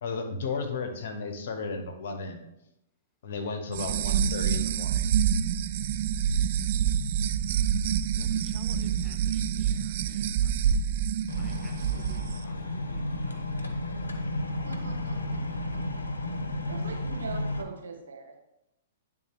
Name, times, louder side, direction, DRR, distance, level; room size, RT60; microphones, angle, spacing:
voice 1, 0.0-2.5 3.2-5.1, left 4 dB, 60° left, 7 dB, 1.0 m, -34 dB
sound 1, 3.7-12.4, right 8 dB, 55° right, 0.4 m, -27 dB
voice 2, 8.2-10.5 11.4-13.7, left 1 dB, 5° left, 3 dB, 0.8 m, -54 dB
Refrigerator Running (interior), 11.3-17.6, left 1 dB, 90° left, 0.7 m, -32 dB
voice 3, 14.6-16.0 16.7-18.4, right 4 dB, 70° right, 2 dB, 1.4 m, -42 dB
10.0 x 3.8 x 3.0 m, 0.87 s
hypercardioid pair, 115°, 0 cm